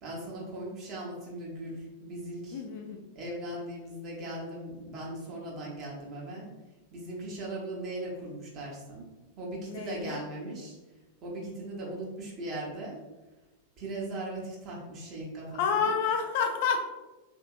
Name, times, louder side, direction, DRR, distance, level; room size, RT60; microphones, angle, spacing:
voice 1, 0.0-2.6 3.1-6.5 6.9-9.1 9.4-10.8 11.2-13.0 13.8-15.9, right 1 dB, 35° right, -4 dB, 1.0 m, -39 dB
voice 2, 2.5-3.0 9.7-10.2 15.5-16.9, left 6 dB, 50° left, 4 dB, 0.4 m, -29 dB
3.4 x 2.8 x 2.4 m, 1.1 s
figure-of-eight pair, 90°, 0 cm